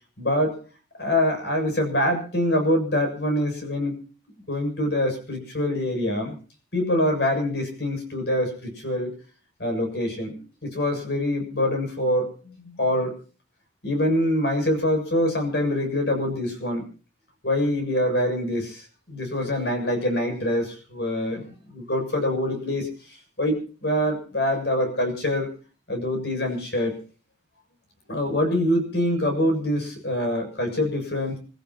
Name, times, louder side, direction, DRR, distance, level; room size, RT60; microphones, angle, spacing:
voice 1, 0.2-0.6 1.0-4.0 4.5-6.4 6.7-9.1 9.6-13.1 13.8-16.9 17.4-21.4 21.9-22.9 23.4-25.5 25.9-27.0 28.1-31.4, left 1 dB, 65° left, 4 dB, 7.5 m, -25 dB
29.0 x 14.0 x 2.9 m, 0.38 s
head